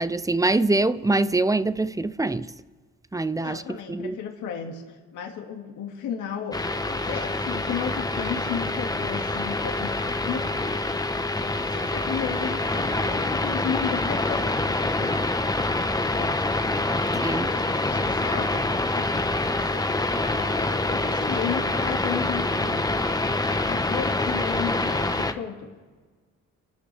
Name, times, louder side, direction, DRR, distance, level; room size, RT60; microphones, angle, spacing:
voice 1, 0.0-2.5 3.1-4.2 17.2-17.5, right 2 dB, 10° right, 0.6 m, -24 dB
voice 2, 3.4-4.8 5.1-6.6 6.9-10.4 11.1-15.2 16.0-16.3 17.1-19.2 19.7-22.9 23.5-25.7, left 7 dB, 85° left, 2.2 m, -34 dB
sound 1, 6.5-25.3, left 2 dB, 15° left, 1.1 m, -26 dB
29.0 x 13.0 x 3.4 m
cardioid pair, 90°, 30 cm